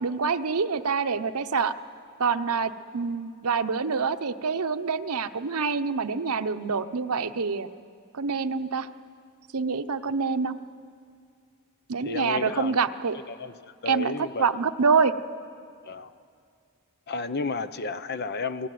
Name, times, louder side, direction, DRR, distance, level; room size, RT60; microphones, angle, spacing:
voice 1, 0.0-1.7 2.2-7.7 8.1-8.9 9.5-10.6 11.9-13.2 13.9-14.1 14.4-15.1, right 5 dB, 85° right, 0.9 m, -26 dB
voice 2, 12.0-12.7 13.3-13.6 13.8-14.5 15.9-16.1 17.1-18.7, left 4 dB, 45° left, 0.8 m, -32 dB
28.5 x 19.5 x 9.3 m
head